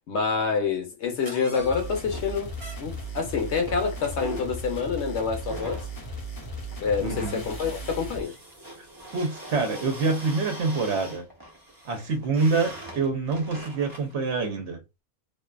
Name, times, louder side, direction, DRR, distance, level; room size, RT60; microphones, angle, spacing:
voice 1, 0.1-2.5 2.8-5.8 6.8-8.3, left 5 dB, 60° left, 0.9 m, -27 dB
sound 1, 1.2-14.1, right 1 dB, 20° right, 0.6 m, -42 dB
sound 2, 1.6-8.3, right 1 dB, 35° left, 0.6 m, -37 dB
voice 2, 7.0-7.4 8.8-8.9 9.1-11.3 11.8-14.8, right 4 dB, 60° right, 0.9 m, -26 dB
2.5 x 2.3 x 2.3 m
omnidirectional pair, 1.5 m